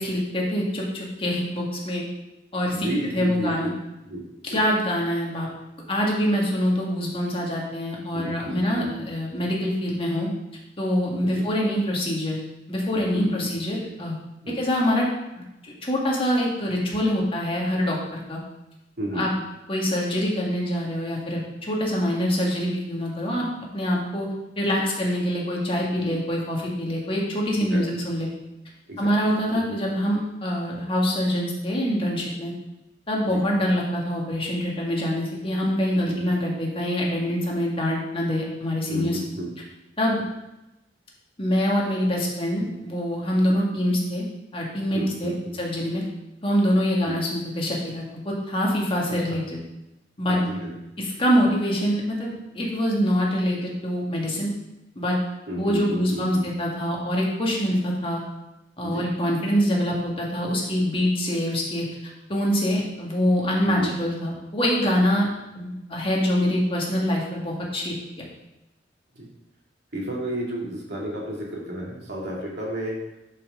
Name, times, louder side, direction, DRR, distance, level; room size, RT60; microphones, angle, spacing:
voice 1, 0.0-2.0 2.5-2.9 3.1-3.7 4.4-5.5 5.9-10.3 10.8-12.4 12.7-14.2 14.5-15.1 15.6-18.4 19.1-19.3 19.7-23.5 23.7-24.3 24.6-28.3 29.0-32.5 33.1-39.2 40.0-40.2 41.4-44.3 44.5-46.0 46.4-49.6 50.2-50.4 51.0-54.5 55.0-55.2 55.5-58.2 58.8-61.9 62.3-65.3 65.6-68.3, equal, 30° left, -3 dB, 1.9 m, -25 dB
voice 2, 2.7-3.7 4.1-4.2 4.5-4.6 8.1-8.9 13.1-13.3 14.4-14.6 19.0-19.2 27.7-27.8 28.9-29.1 29.5-29.6 33.3-33.4 36.1-36.2 38.9-39.5 44.9-45.6 47.1-47.2 50.3-50.7 55.5-56.5 58.8-59.1 63.8-63.9 69.2-69.3 69.9-73.0, right 1 dB, 65° right, -3 dB, 2.5 m, -31 dB
11.0 x 5.6 x 3.8 m, 0.94 s
head